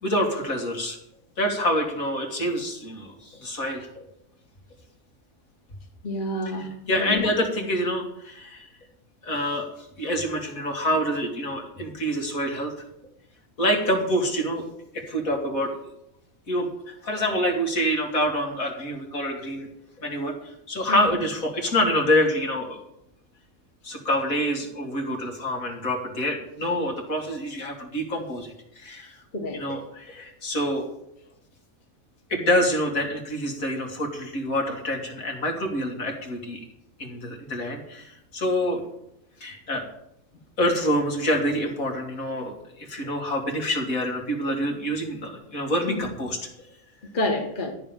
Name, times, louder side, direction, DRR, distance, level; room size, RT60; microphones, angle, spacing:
voice 1, 0.0-1.0 1.4-4.0 6.6-8.7 9.2-9.7 10.0-12.7 13.6-14.6 14.9-15.7 16.5-19.7 20.0-22.8 23.8-29.2 29.5-30.9 32.3-36.6 37.0-38.8 39.4-39.8 40.6-46.4, equal, 80° left, 0 dB, 2.9 m, -26 dB
voice 2, 6.0-6.7 7.0-7.2 20.9-21.0 29.3-29.6 45.9-46.0 47.1-47.7, left 1 dB, 35° left, 2 dB, 1.7 m, -28 dB
13.5 x 5.3 x 9.0 m, 0.79 s
omnidirectional pair, 1.4 m